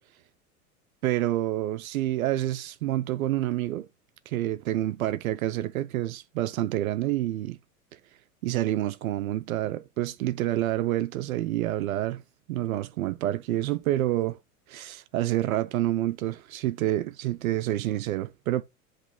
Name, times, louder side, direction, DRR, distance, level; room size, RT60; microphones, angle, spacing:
voice 1, 1.0-3.9 4.3-7.6 8.4-12.2 12.5-14.4 14.7-18.6, right 14 dB, 60° right, 0.7 m, -28 dB
8.1 x 3.2 x 5.4 m
figure-of-eight pair, 90°, 47 cm